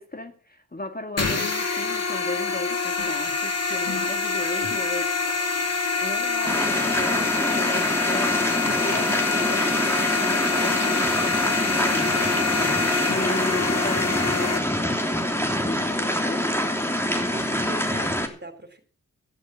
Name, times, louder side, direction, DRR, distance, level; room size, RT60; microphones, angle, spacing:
voice 1, 0.0-5.1 6.0-15.0 15.3-16.5, left 2 dB, 25° left, 2.0 m, -35 dB
sound 1, 1.2-14.6, left 4 dB, 50° left, 2.7 m, -26 dB
sound 2, 6.4-18.3, equal, 5° left, 3.1 m, -25 dB
voice 2, 17.1-18.8, right 2 dB, 30° right, 4.1 m, -41 dB
13.5 x 10.5 x 6.2 m
cardioid pair, 50°, 33 cm